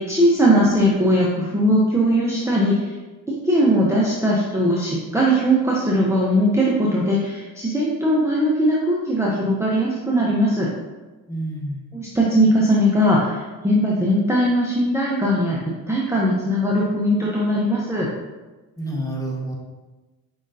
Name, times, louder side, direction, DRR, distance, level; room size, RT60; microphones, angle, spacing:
voice 1, 0.0-2.9 3.4-10.7 11.9-15.6 15.9-18.1, equal, 5° right, -5 dB, 0.8 m, -19 dB
voice 2, 11.3-11.9 18.8-19.5, right 1 dB, 10° left, -2 dB, 1.2 m, -28 dB
5.1 x 3.8 x 2.6 m, 1.2 s
supercardioid pair, 75°, 38 cm